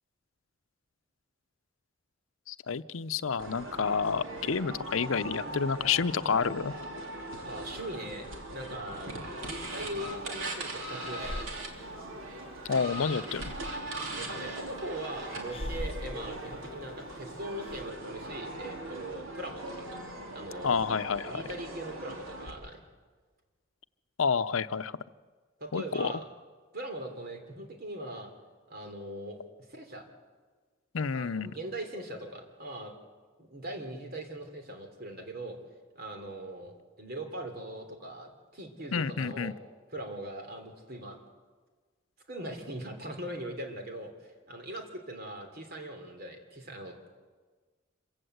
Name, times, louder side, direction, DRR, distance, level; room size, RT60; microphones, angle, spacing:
voice 1, 2.5-6.7 12.6-13.5 20.6-21.4 24.2-25.0 25.7-26.1 30.9-31.6 38.9-39.5, left 5 dB, 90° left, 13 dB, 0.6 m, -29 dB
sound 1, 3.4-22.5, right 1 dB, 80° right, 3.3 m, -40 dB
voice 2, 7.4-9.1 9.4-11.6 14.2-19.9 20.3-20.8 21.3-22.8 25.6-26.3 26.7-28.3 28.7-29.4 29.7-30.1 31.0-32.9 33.4-35.6 35.9-39.5 39.9-41.2 42.3-46.9, right 1 dB, 50° right, 5 dB, 3.3 m, -41 dB
Breathing, 9.4-17.9, left 1 dB, 30° left, 0.9 m, -44 dB
26.5 x 16.0 x 8.0 m, 1.4 s
head